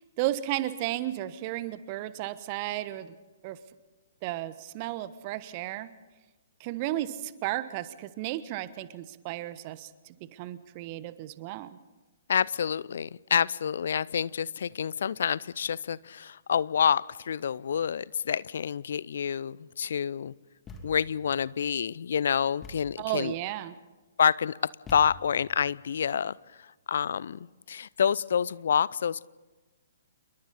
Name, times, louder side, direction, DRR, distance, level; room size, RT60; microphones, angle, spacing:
voice 1, 0.2-3.1 3.4-3.6 4.2-5.9 6.6-11.7 23.0-23.7, right 14 dB, 35° right, 15 dB, 1.1 m, -34 dB
voice 2, 12.3-20.3 20.8-23.3 24.2-24.5 24.9-26.3 26.9-29.3, left 7 dB, 55° left, 22 dB, 0.6 m, -28 dB
Thump thud, 20.7-21.2 22.6-23.1 24.9-25.5, left 2 dB, 15° left, 2.6 m, -45 dB
28.0 x 22.5 x 4.2 m, 1.2 s
figure-of-eight pair, 120°, 0 cm